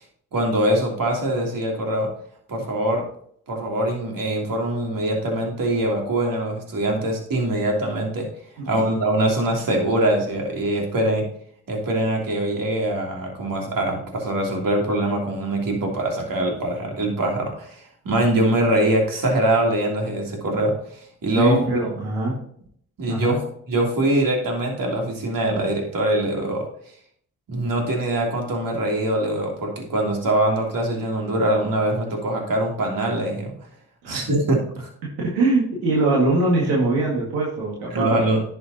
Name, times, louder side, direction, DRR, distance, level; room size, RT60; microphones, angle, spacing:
voice 1, 0.3-2.1 2.5-3.0 3.5-8.3 8.7-11.2 11.7-20.7 21.2-21.6 23.0-23.4 23.7-26.6 27.5-33.5 34.1-34.9 37.9-38.4, right 1 dB, 60° right, 0 dB, 3.1 m, -23 dB
voice 2, 21.3-22.3 23.1-23.4 34.0-34.2 35.2-38.2, right 2 dB, 90° right, -3 dB, 2.1 m, -22 dB
11.0 x 6.9 x 2.8 m, 0.63 s
supercardioid pair, 45°, 38 cm